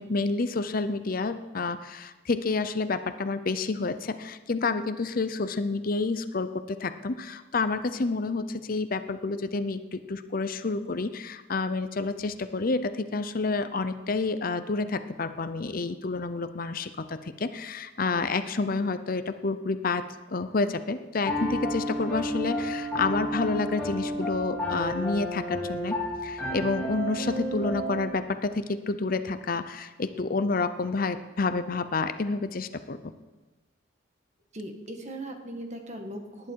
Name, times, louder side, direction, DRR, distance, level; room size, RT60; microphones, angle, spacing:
voice 1, 0.0-20.0 20.3-33.1, left 3 dB, 50° left, 11 dB, 0.6 m, -29 dB
Piano, 21.2-28.1, equal, 10° left, 4.7 m, -31 dB
voice 2, 34.5-36.5, right 1 dB, 35° right, 4 dB, 1.6 m, -38 dB
18.5 x 11.0 x 4.7 m, 1.2 s
head